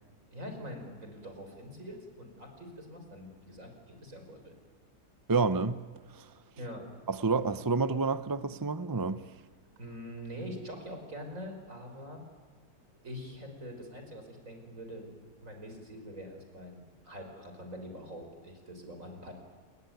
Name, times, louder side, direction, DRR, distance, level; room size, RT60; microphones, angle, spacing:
voice 1, 0.3-4.5 6.6-6.9 9.8-12.2 13.0-15.1 15.4-19.3, equal, 60° right, 4 dB, 5.8 m, -44 dB
voice 2, 5.3-5.8 6.1-6.3 7.1-9.2, right 4 dB, 25° right, 13 dB, 0.4 m, -29 dB
29.0 x 22.0 x 9.4 m, 1.5 s
omnidirectional pair, 1.6 m